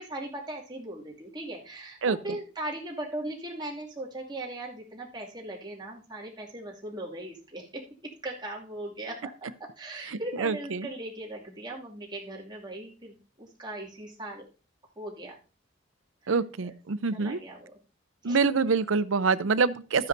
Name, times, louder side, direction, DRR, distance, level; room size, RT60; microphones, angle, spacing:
voice 1, 0.0-14.4 15.0-15.4 16.2-16.3 16.6-16.7 17.1-17.8 18.2-18.4, right 1 dB, 20° right, -3 dB, 2.4 m, -39 dB
voice 2, 10.1-10.9 16.3-17.4 18.2-20.1, right 4 dB, 90° right, 14 dB, 0.6 m, -26 dB
13.0 x 9.6 x 2.7 m, 0.37 s
head